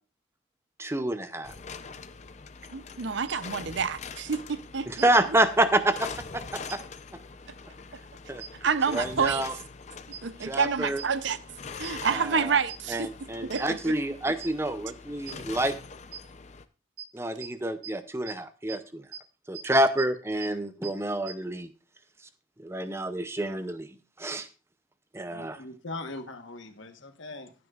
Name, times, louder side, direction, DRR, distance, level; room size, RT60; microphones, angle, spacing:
voice 1, 0.8-1.5 4.9-6.8 8.3-8.4 8.9-9.5 10.4-11.0 12.1-12.6 12.9-15.7 17.1-19.1 19.5-21.7 22.6-23.9 24.2-24.5 25.1-25.6, right 1 dB, 15° right, 0.6 m, -28 dB
sound 1, 1.4-16.6, left 5 dB, 35° left, 0.5 m, -44 dB
voice 2, 2.7-5.1 8.6-9.4 10.2-11.4 11.8-13.9, right 6 dB, 65° right, 0.6 m, -28 dB
sound 2, 3.3-3.4 5.0-5.1 6.7-6.8 8.4-8.5 10.1-10.2 11.0-11.1 11.8-11.9 12.7-12.8 13.5-13.6 14.4-14.5 15.3-15.4 16.1-16.2 17.0-17.1 17.4-17.5 17.8-17.9 18.3-18.4 18.7-18.8 19.1-19.2 19.5-19.6 20.0-20.1 20.4-20.5 20.8-20.9 21.3-21.4, right 9 dB, 50° right, 5.8 m, -39 dB
voice 3, 25.3-27.5, left 2 dB, 75° left, 1.3 m, -40 dB
15.5 x 9.3 x 2.4 m
head